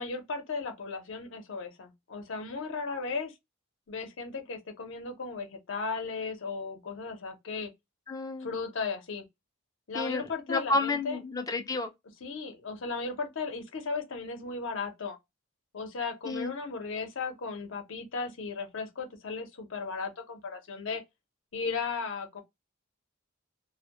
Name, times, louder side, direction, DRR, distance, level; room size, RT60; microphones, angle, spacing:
voice 1, 0.0-3.3 3.9-7.7 8.4-9.2 9.9-11.2 12.2-15.2 15.7-21.0 21.5-22.4, left 4 dB, 65° left, 0.6 m, -36 dB
voice 2, 8.1-8.5 9.9-10.2 10.5-11.9 16.3-16.5, left 2 dB, 15° left, 0.3 m, -30 dB
2.1 x 2.0 x 2.8 m
head